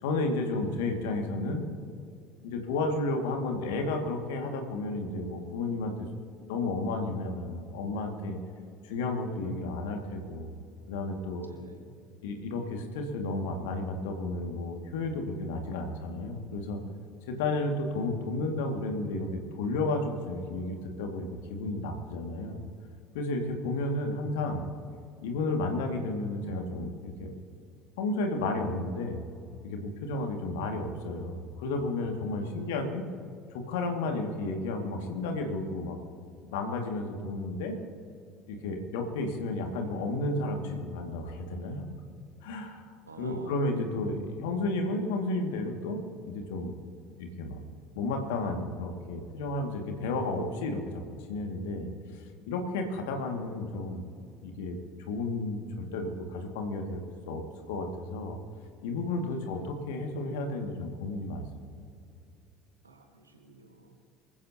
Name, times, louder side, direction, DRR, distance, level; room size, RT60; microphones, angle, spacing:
voice 1, 0.0-1.7 2.4-6.1 6.5-8.4 8.8-10.5 10.9-11.4 12.2-16.8 17.3-22.6 23.1-24.6 25.2-27.3 28.0-29.2 29.6-33.1 33.5-36.0 36.5-37.8 38.5-41.9 42.4-42.9 43.2-46.7 47.1-47.6 47.9-51.0 51.3-54.1 54.4-57.0 57.3-58.4 58.8-61.4, left 2 dB, 65° left, 3 dB, 2.1 m, -32 dB
voice 2, 11.4-11.9 23.7-23.9 32.4-32.7 43.0-43.6 59.3-59.6 62.8-64.0, right 2 dB, 85° right, 3 dB, 1.8 m, -49 dB
25.5 x 15.0 x 2.9 m, 2.4 s
figure-of-eight pair, 60°, 0 cm